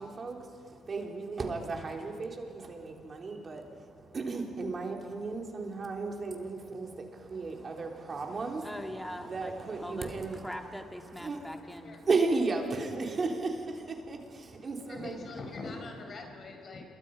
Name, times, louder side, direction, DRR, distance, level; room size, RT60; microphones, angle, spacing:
voice 1, 0.0-10.5 11.2-11.4 12.0-15.2, right 3 dB, 40° right, 2 dB, 3.5 m, -34 dB
voice 2, 8.6-9.5 9.8-10.1 10.4-11.9, left 1 dB, 5° left, 4 dB, 2.2 m, -41 dB
voice 3, 14.9-16.8, left 3 dB, 50° left, 3 dB, 4.7 m, -42 dB
27.5 x 23.0 x 5.5 m, 2.4 s
cardioid pair, 90°, 0 cm